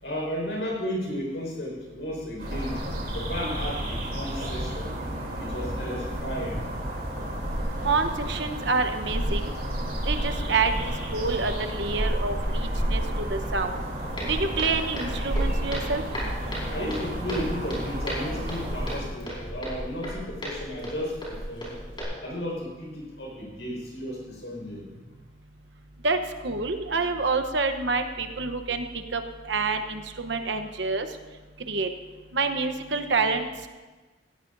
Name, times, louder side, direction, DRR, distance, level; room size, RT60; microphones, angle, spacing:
voice 1, 0.0-2.8 3.1-4.9 5.4-6.6 16.7-21.7 22.2-24.9, equal, 70° left, -2 dB, 5.0 m, -34 dB
sound 1, 2.4-19.0, equal, 55° right, 3.1 m, -31 dB
voice 2, 7.8-9.5 10.1-10.7 11.1-13.0 13.3-13.8 14.2-16.0 26.0-26.2 26.4-28.8 29.1-29.2 29.5-31.1 31.7-31.9 32.3-33.5, right 4 dB, 70° right, 8 dB, 0.9 m, -27 dB
Walk footsteps, 14.2-22.0, equal, 25° left, 5.1 m, -35 dB
17.5 x 15.5 x 2.7 m, 1.3 s
head